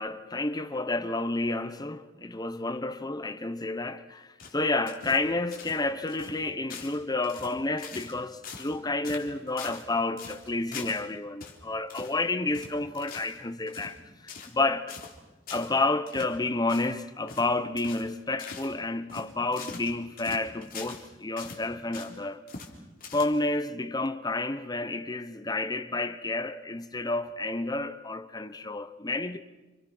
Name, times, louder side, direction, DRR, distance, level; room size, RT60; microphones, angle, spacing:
voice 1, 0.0-15.0 15.5-22.4 23.1-29.4, left 2 dB, 20° left, 1.1 m, -30 dB
sound 1, 4.4-5.3 5.5-5.8 6.1-6.4 6.7-7.0 7.2-8.2 8.4-8.8 9.0-9.9 10.2-11.0 11.4-11.6 11.9-12.2 12.5-13.4 13.7-14.0 14.3-14.6 14.9-15.2 15.5-15.7 16.1-16.3 16.7-16.9 17.3-17.5 17.8-18.1 18.4-18.7 19.1-21.1 21.4-22.2 22.5-22.7 23.0-23.6, left 5 dB, 50° left, 3.8 m, -43 dB
29.0 x 28.5 x 6.2 m
head